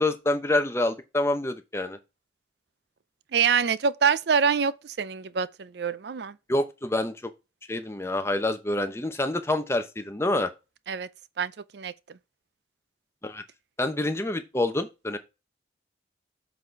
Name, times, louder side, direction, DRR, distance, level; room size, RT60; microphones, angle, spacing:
voice 1, 0.0-2.0 6.5-7.3 7.7-10.5 13.2-13.4 13.8-15.2, left 2 dB, 15° left, 0.8 m, -27 dB
voice 2, 3.3-6.3 10.9-11.1 11.4-11.9, right 6 dB, 60° right, 0.5 m, -25 dB
7.4 x 4.2 x 4.5 m
head